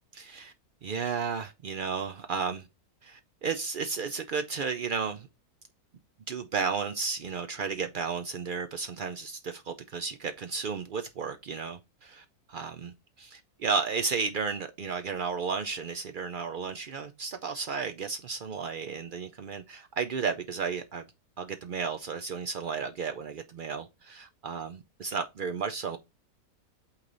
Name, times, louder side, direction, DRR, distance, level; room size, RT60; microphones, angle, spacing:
voice 1, 0.1-0.5 0.8-2.7 3.0-5.3 6.3-21.1 21.4-26.0, right 5 dB, 85° right, 0.4 m, -33 dB
8.5 x 3.3 x 3.9 m
omnidirectional pair, 1.6 m